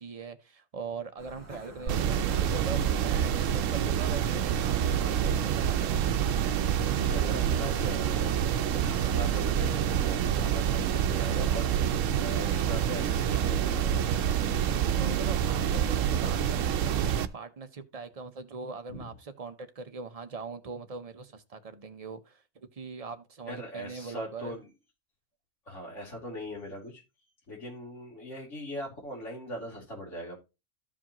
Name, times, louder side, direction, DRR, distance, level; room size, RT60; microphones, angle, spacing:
voice 1, 0.0-6.1 14.2-24.6, right 5 dB, 35° right, 0.7 m, -41 dB
sound 1, 1.2-7.5, right 2 dB, 10° right, 2.1 m, -45 dB
sound 2, 1.9-17.3, right 9 dB, 80° right, 1.0 m, -27 dB
voice 2, 7.0-8.4 8.8-14.4 18.9-19.1 23.5-24.7 25.7-27.0 27.5-30.4, equal, 70° left, 3.4 m, -40 dB
13.5 x 5.0 x 2.9 m
omnidirectional pair, 1.3 m